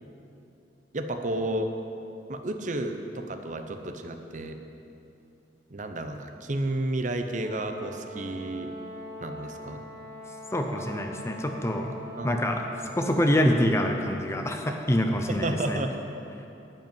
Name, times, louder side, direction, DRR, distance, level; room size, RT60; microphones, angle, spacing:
voice 1, 0.9-1.7 2.3-4.6 5.7-8.7 9.2-9.8 12.2-12.3 15.3-16.0, right 1 dB, 45° right, 6 dB, 0.7 m, -31 dB
Brass instrument, 7.3-13.7, equal, 65° right, 3.3 m, -43 dB
voice 2, 10.5-11.9 12.2-12.7 13.0-15.8, left 1 dB, 15° left, 4 dB, 0.6 m, -25 dB
12.0 x 5.4 x 9.1 m, 2.8 s
head